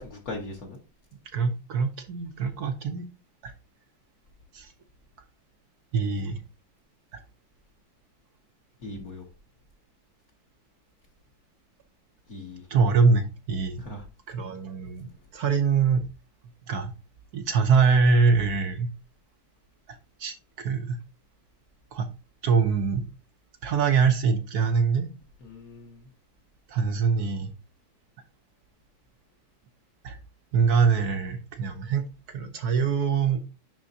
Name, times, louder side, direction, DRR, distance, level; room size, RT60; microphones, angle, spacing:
voice 1, 0.1-0.8 8.8-9.2 12.3-12.6 13.8-14.0 25.5-25.9, left 2 dB, 50° left, 1.5 m, -38 dB
voice 2, 1.3-3.0 3.4-3.5 4.5-4.7 5.9-6.4 7.1-7.2 12.7-13.8 14.3-15.1 15.3-16.1 16.7-16.9 17.3-18.9 19.9-21.0 21.9-22.1 22.4-23.1 23.6-25.1 26.7-27.5 30.0-30.2 30.5-33.5, right 5 dB, 65° right, 1.0 m, -24 dB
10.5 x 3.6 x 2.7 m
omnidirectional pair, 2.2 m